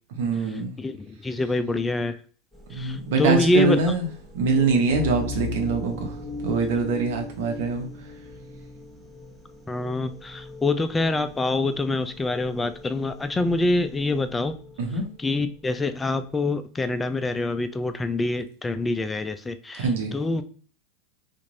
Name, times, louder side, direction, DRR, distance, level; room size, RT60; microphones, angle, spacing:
voice 1, 0.2-0.7 2.7-4.1 4.3-6.2 6.4-8.1 14.8-15.1 19.8-20.1, right 4 dB, 70° right, 4 dB, 1.0 m, -24 dB
voice 2, 0.8-2.2 2.7-3.8 9.7-14.6 15.2-20.4, left 2 dB, 15° left, 10 dB, 0.4 m, -25 dB
sound 1, 2.5-16.0, left 1 dB, 10° right, 1.1 m, -39 dB
3.0 x 2.5 x 3.9 m, 0.41 s
hypercardioid pair, 105°, 0 cm